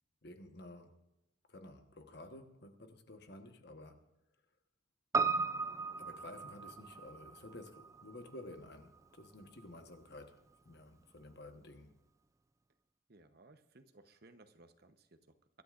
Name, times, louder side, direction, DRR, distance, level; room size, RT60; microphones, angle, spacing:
voice 1, 0.2-1.0 1.5-4.1 6.0-10.4 10.6-11.9, left 1 dB, 50° left, 1.2 m, -52 dB
Piano, 5.1-9.6 9.9-10.0, right 4 dB, 15° right, 0.4 m, -37 dB
voice 2, 13.1-15.6, right 2 dB, 50° right, 0.9 m, -61 dB
24.5 x 13.0 x 2.5 m
head